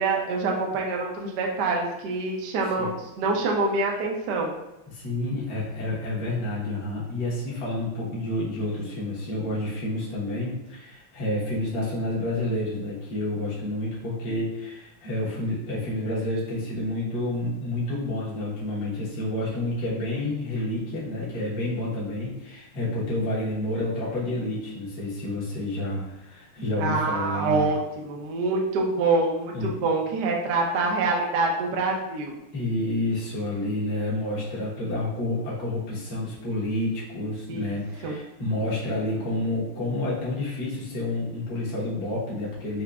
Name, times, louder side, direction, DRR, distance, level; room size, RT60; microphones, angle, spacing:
voice 1, 0.0-2.9 3.2-4.5 26.8-32.4 37.5-37.7 38.0-38.2, right 3 dB, 65° right, 0 dB, 1.1 m, -25 dB
voice 2, 4.9-27.7 29.5-29.7 32.5-42.8, left 1 dB, 50° left, -6 dB, 1.6 m, -29 dB
5.7 x 2.9 x 2.4 m, 0.93 s
omnidirectional pair, 2.3 m